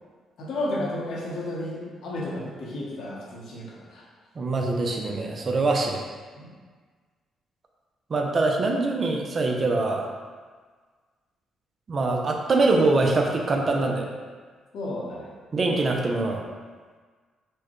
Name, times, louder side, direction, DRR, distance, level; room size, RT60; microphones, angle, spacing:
voice 1, 0.4-4.1 6.4-6.5 14.7-15.3, left 1 dB, 75° left, -4 dB, 0.9 m, -32 dB
voice 2, 4.4-6.0 8.1-10.1 11.9-14.1 15.5-16.5, right 3 dB, 40° right, 1 dB, 0.5 m, -24 dB
4.5 x 2.1 x 3.0 m, 1.5 s
cardioid pair, 90°, 0 cm